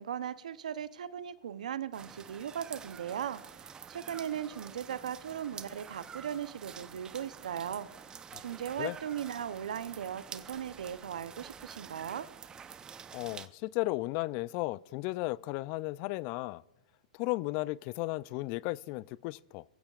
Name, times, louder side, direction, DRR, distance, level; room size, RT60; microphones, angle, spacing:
voice 1, 0.0-3.4 3.9-7.9 8.4-12.3, right 9 dB, 80° right, 0.7 m, -38 dB
sound 1, 1.9-13.5, right 7 dB, 20° right, 0.7 m, -48 dB
voice 2, 13.1-16.6 17.1-19.6, left 20 dB, 45° left, 0.3 m, -35 dB
23.0 x 15.5 x 2.4 m
hypercardioid pair, 120°, 4 cm